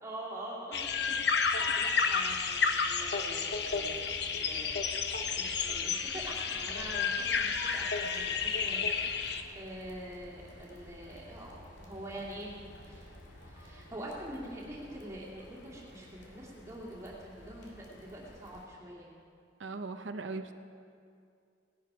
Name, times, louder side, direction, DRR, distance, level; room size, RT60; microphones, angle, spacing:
voice 1, 0.0-4.7 5.4-19.1, right 1 dB, 15° right, -6 dB, 2.5 m, -45 dB
sound 1, 0.7-9.4, left 5 dB, 60° left, 0.8 m, -31 dB
sound 2, 3.5-18.7, left 1 dB, 80° left, 2.2 m, -54 dB
voice 2, 19.6-20.5, right 3 dB, 80° right, 8 dB, 0.7 m, -38 dB
18.0 x 11.5 x 5.0 m, 2.4 s
head